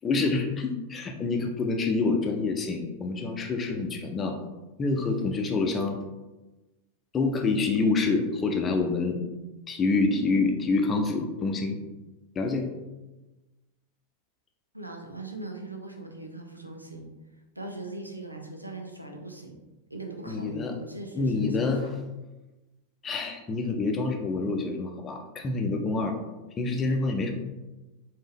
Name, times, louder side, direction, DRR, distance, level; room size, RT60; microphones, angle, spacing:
voice 1, 0.0-4.4 4.8-6.0 7.1-9.2 9.7-11.8 12.4-12.7 20.3-20.7 21.1-21.9 23.0-26.2 26.6-27.3, left 3 dB, 20° left, 3 dB, 0.6 m, -27 dB
voice 2, 14.7-17.1 17.6-19.6 19.9-21.9, right 2 dB, 85° right, 2 dB, 0.6 m, -40 dB
5.3 x 2.8 x 3.5 m, 1.1 s
figure-of-eight pair, 90°, 0 cm